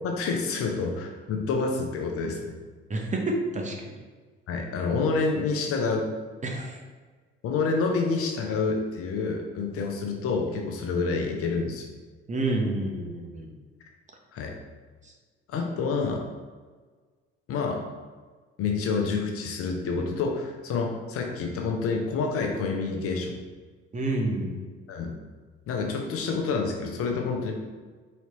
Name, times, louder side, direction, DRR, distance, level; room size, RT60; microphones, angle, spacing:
voice 1, 0.0-2.5 4.5-6.1 7.4-11.9 14.3-14.5 15.5-16.2 17.5-17.8 18.6-23.4 24.9-25.1 25.7-27.5, left 4 dB, 50° left, 2 dB, 0.8 m, -28 dB
voice 2, 2.9-3.9 6.4-6.8 12.3-13.5 15.0-15.1 23.9-24.5, right 2 dB, 25° right, 1 dB, 0.9 m, -29 dB
4.3 x 4.1 x 2.9 m, 1.4 s
figure-of-eight pair, 50°, 31 cm